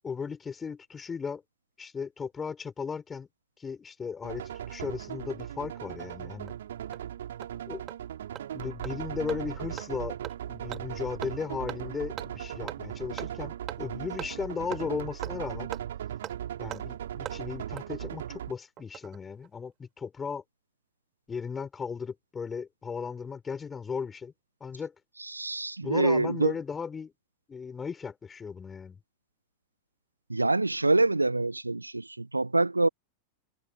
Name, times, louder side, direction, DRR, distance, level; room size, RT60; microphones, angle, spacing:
voice 1, 0.0-1.4 1.8-3.3 3.6-6.5 7.7-7.8 8.5-10.2 10.5-15.7 16.6-20.4 21.3-24.3 24.6-24.9 25.8-27.1 27.5-29.0, left 6 dB, 15° left, 6.0 m, -36 dB
sound 1, 4.2-18.5, right 10 dB, 60° right, 5.5 m, -38 dB
Hammer, 6.0-6.1 6.5-6.6 6.9-7.0 7.4-7.5 7.9-8.0 8.3-8.4 8.8-8.9 9.3-9.4 9.8-9.9 10.2-10.3 10.7-10.8 11.2-11.3 11.7-11.8 12.2-12.3 12.7-12.8 13.2-13.3 13.7-13.8 14.2-14.3 14.7-14.8 15.2-15.3 15.7-15.8 16.2-16.3 16.7-16.8 17.2-17.4 17.8-17.9 18.8-19.2 19.4-19.5, right 12 dB, 30° right, 5.1 m, -39 dB
voice 2, 25.2-26.5 30.3-32.9, right 2 dB, 85° right, 0.5 m, -26 dB
figure-of-eight pair, 90°, 0 cm